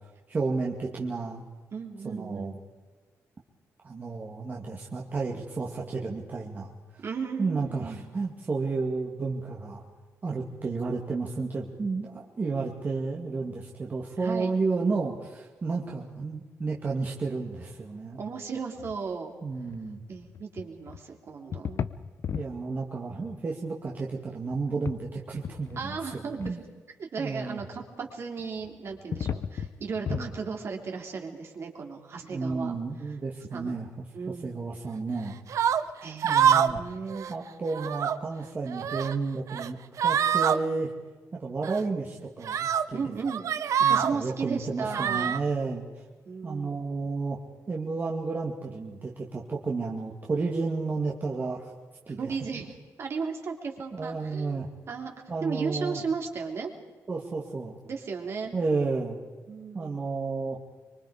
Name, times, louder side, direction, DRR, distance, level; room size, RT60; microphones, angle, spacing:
voice 1, 0.3-1.4 2.0-2.6 3.8-7.0 7.4-9.8 10.2-18.2 19.4-20.0 22.3-25.9 26.4-26.6 27.2-27.6 30.1-30.3 32.3-33.9 34.4-35.4 36.2-36.8 37.3-39.8 40.0-40.9 41.4-43.2 43.8-46.0 46.4-47.4 47.7-51.7 52.1-52.3 53.9-54.7 55.3-56.0 57.1-57.8 58.5-59.2 59.7-60.6, right 4 dB, 35° right, -2 dB, 2.1 m, -32 dB
voice 2, 1.7-2.6 7.0-8.0 14.2-14.5 18.1-19.3 20.1-21.8 25.8-26.6 27.0-32.8 33.0-33.1 33.5-33.7 34.1-34.6 36.0-37.3 42.9-43.5 43.9-45.3 46.2-46.8 52.2-55.1 55.4-56.7 57.8-58.6 59.5-60.0, right 5 dB, 50° right, 2 dB, 3.2 m, -35 dB
sound 1, 18.8-19.0 19.5-19.8 20.2-21.0 21.5-22.6 23.3-23.4 24.5-25.0 25.3-26.0 26.4-26.5 28.4-30.3, left 7 dB, 55° left, 0.7 m, -35 dB
sound 2, 35.5-35.8 36.2-36.8 37.1-37.3 37.7-38.2 38.7-39.2 39.5-39.7 40.0-40.6 41.6-41.8 42.4-42.8 43.3-44.1 44.9-45.4, right 8 dB, 70° right, 0.8 m, -25 dB
25.0 x 23.5 x 5.0 m, 1.4 s
cardioid pair, 120°, 6 cm